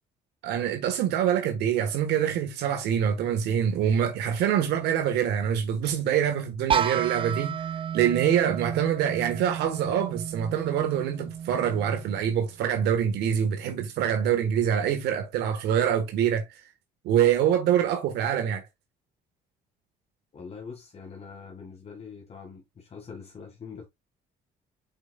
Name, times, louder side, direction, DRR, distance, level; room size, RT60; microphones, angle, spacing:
voice 1, 0.4-7.6 7.9-16.4 17.0-18.6, right 9 dB, 80° right, 1.5 m, -25 dB
sound 1, 6.7-12.5, right 8 dB, 30° right, 0.5 m, -32 dB
voice 2, 20.3-23.9, left 5 dB, 40° left, 2.1 m, -43 dB
7.4 x 5.6 x 2.4 m
cardioid pair, 110°, 17 cm